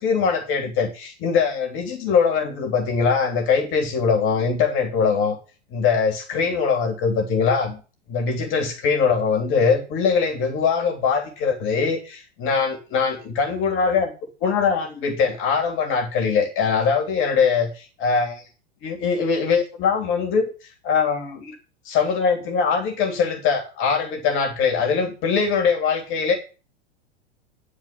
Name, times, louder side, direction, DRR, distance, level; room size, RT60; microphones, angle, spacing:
voice 1, 0.0-5.4 5.7-7.8 8.1-14.1 14.4-18.4 18.8-20.5 20.8-21.5 21.8-26.3, left 5 dB, 40° left, 4 dB, 3.2 m, -22 dB
11.0 x 4.9 x 7.8 m, 0.33 s
figure-of-eight pair, 95°, 32 cm